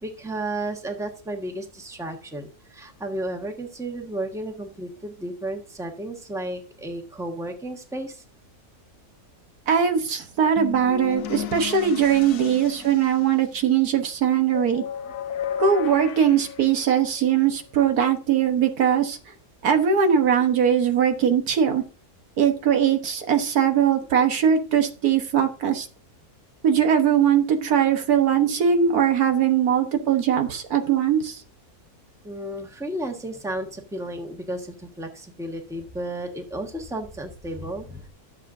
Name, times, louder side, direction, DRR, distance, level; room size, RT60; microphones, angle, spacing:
voice 1, 0.0-8.2 15.0-15.1 20.7-21.4 27.5-27.7 29.7-30.1 32.2-38.1, right 1 dB, ahead, 3 dB, 1.3 m, -34 dB
voice 2, 9.7-14.8 15.6-19.2 19.6-21.8 22.4-25.9 26.6-31.4, right 8 dB, 80° right, 6 dB, 1.7 m, -21 dB
sound 1, 10.6-13.6 14.5-17.4, left 8 dB, 85° left, 1.3 m, -34 dB
13.0 x 7.2 x 2.6 m, 0.35 s
omnidirectional pair, 1.6 m